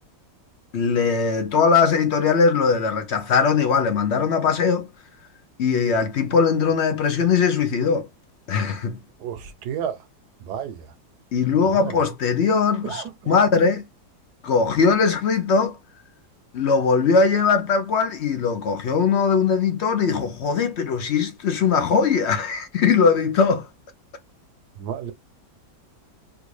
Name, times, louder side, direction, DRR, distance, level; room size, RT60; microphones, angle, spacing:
voice 1, 0.7-4.9 5.6-8.1 8.5-9.0 11.3-13.8 14.4-15.8 16.5-23.7, left 5 dB, 70° left, 0.6 m, -20 dB
voice 2, 9.2-10.0 10.4-10.8 11.8-11.9 12.8-13.4 24.8-25.1, right 8 dB, 75° right, 1.2 m, -31 dB
3.4 x 2.5 x 3.1 m
omnidirectional pair, 1.9 m